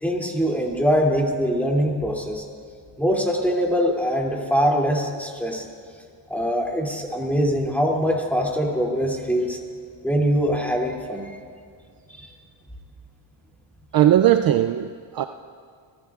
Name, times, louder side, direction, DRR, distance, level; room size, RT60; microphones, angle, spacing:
voice 1, 0.0-2.4 3.0-5.6 6.3-9.6 10.0-11.3 12.1-12.3, equal, 5° left, -2 dB, 2.7 m, -23 dB
voice 2, 13.9-15.2, right 11 dB, 50° right, 8 dB, 0.5 m, -18 dB
29.5 x 15.0 x 2.4 m, 2.2 s
cardioid pair, 105°, 46 cm